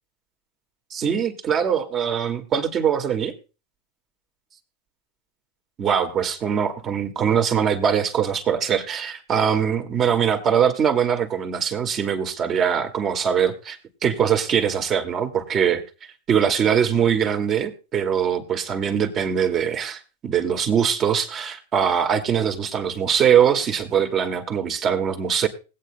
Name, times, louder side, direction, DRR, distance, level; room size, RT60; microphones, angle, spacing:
voice 1, 0.9-3.3 5.8-15.8 16.3-25.5, right 8 dB, 35° right, 6 dB, 1.9 m, -22 dB
20.5 x 8.6 x 2.2 m, 0.30 s
hypercardioid pair, 105°, 0 cm